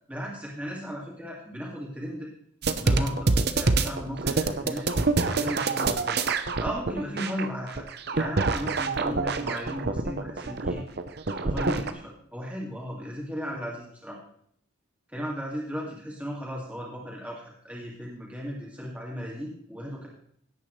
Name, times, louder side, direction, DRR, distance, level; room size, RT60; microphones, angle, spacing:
voice 1, 0.1-2.3 2.7-4.9 5.2-6.2 6.6-7.9 8.1-10.8 11.3-14.2 15.1-20.1, equal, 5° right, -3 dB, 2.2 m, -36 dB
sound 1, 2.6-11.9, right 3 dB, 50° right, 0.8 m, -26 dB
16.5 x 8.9 x 3.2 m, 0.65 s
head